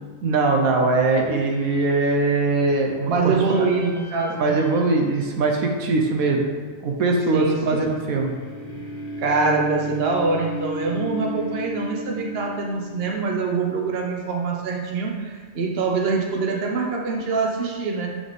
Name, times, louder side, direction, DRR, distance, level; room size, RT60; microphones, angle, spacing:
voice 1, 0.2-3.7 4.3-6.4 6.8-8.3, right 3 dB, 75° right, 2 dB, 1.2 m, -21 dB
sound 1, 1.2-13.3, equal, 45° left, 1.3 m, -36 dB
voice 2, 3.1-4.6 7.3-7.9 9.2-18.1, right 4 dB, 50° right, 0 dB, 1.0 m, -24 dB
9.2 x 3.5 x 4.1 m, 1.5 s
omnidirectional pair, 1.5 m